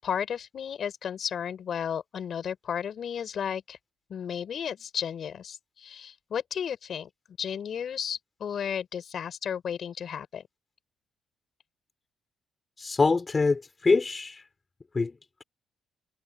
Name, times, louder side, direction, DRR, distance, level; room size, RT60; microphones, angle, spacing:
voice 1, 0.0-3.8 4.1-7.1 7.4-10.4, left 8 dB, 60° left, 6.5 m, -33 dB
voice 2, 12.8-14.4 14.9-15.2, left 3 dB, 30° left, 4.0 m, -24 dB
cardioid pair, 90°, 0 cm